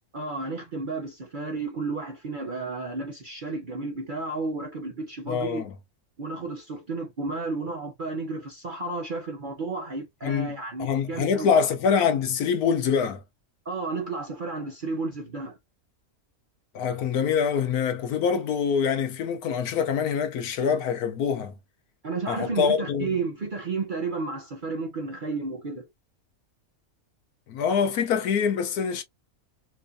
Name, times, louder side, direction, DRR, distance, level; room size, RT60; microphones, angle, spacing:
voice 1, 0.1-5.6 6.2-11.5 13.6-15.6 22.0-25.9, right 3 dB, 45° right, 0.7 m, -32 dB
voice 2, 5.3-5.7 10.2-13.2 16.7-21.5 22.3-23.2 27.5-29.0, left 7 dB, 90° left, 1.3 m, -25 dB
4.4 x 2.5 x 2.6 m
omnidirectional pair, 1.5 m